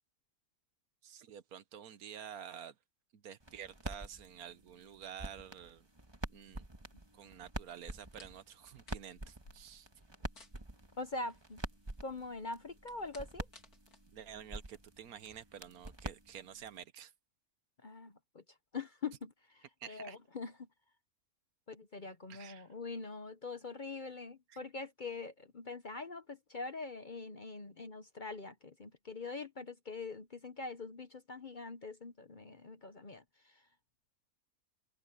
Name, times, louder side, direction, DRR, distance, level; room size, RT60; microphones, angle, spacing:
voice 1, 1.0-2.7 3.1-5.9 6.3-6.7 7.1-9.9 14.1-17.1 19.8-20.2 22.3-22.7 24.5-24.6, right 9 dB, 75° right, 1.4 m, -49 dB
sound 1, 3.4-16.8, right 2 dB, 15° right, 1.7 m, -47 dB
sound 2, 7.8-15.2, left 3 dB, 75° left, 4.0 m, -63 dB
voice 2, 11.0-11.6 12.0-13.5 17.8-18.4 18.7-20.7 21.7-33.6, left 3 dB, 40° left, 0.8 m, -44 dB
open air
omnidirectional pair, 1.6 m